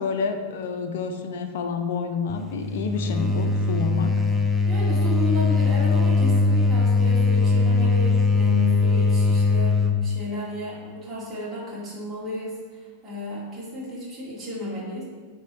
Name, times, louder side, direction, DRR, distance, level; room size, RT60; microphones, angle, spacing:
voice 1, 0.0-4.1, left 5 dB, 55° left, 6 dB, 0.6 m, -29 dB
sound 1, 2.3-10.0, left 3 dB, 5° left, 0.6 m, -21 dB
voice 2, 4.7-15.0, left 1 dB, 20° right, -8 dB, 2.0 m, -33 dB
8.5 x 3.1 x 4.7 m, 1.4 s
figure-of-eight pair, 90°, 0 cm